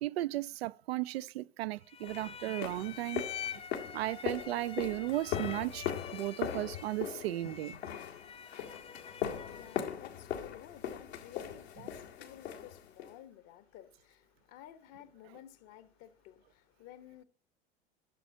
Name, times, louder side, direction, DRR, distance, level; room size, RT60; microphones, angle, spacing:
voice 1, 0.0-3.3 3.9-7.8, right 16 dB, 70° right, 0.5 m, -35 dB
sound 1, 1.9-10.0, left 8 dB, 20° left, 0.4 m, -46 dB
sound 2, 2.0-13.2, left 9 dB, 75° left, 1.9 m, -40 dB
voice 2, 8.7-17.2, left 12 dB, 50° left, 1.2 m, -54 dB
12.0 x 6.9 x 2.8 m
hypercardioid pair, 80°, 32 cm